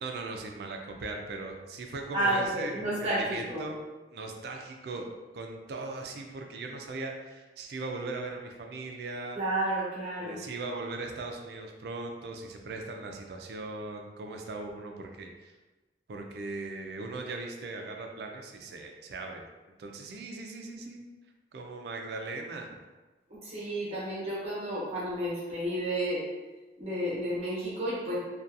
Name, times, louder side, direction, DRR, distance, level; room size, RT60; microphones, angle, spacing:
voice 1, 0.0-3.8 4.1-9.4 10.2-15.5 16.1-19.4 19.8-21.0 21.5-22.8, right 3 dB, 60° right, 3 dB, 0.3 m, -39 dB
voice 2, 2.1-3.7 9.3-10.4 23.3-26.2 26.8-28.2, right 1 dB, 35° right, -7 dB, 1.0 m, -31 dB
2.6 x 2.2 x 2.4 m, 1.2 s
head